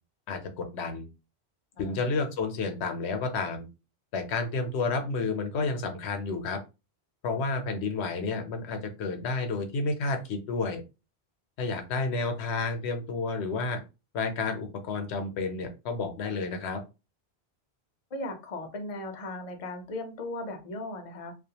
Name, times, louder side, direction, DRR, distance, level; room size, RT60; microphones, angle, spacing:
voice 1, 0.3-1.1 1.8-3.7 4.1-6.6 7.2-10.8 11.6-13.8 14.1-16.8, left 3 dB, 80° left, 6 dB, 0.9 m, -30 dB
voice 2, 18.1-21.3, left 2 dB, 45° left, 4 dB, 0.5 m, -37 dB
2.3 x 2.2 x 2.8 m, 0.28 s
omnidirectional pair, 1.1 m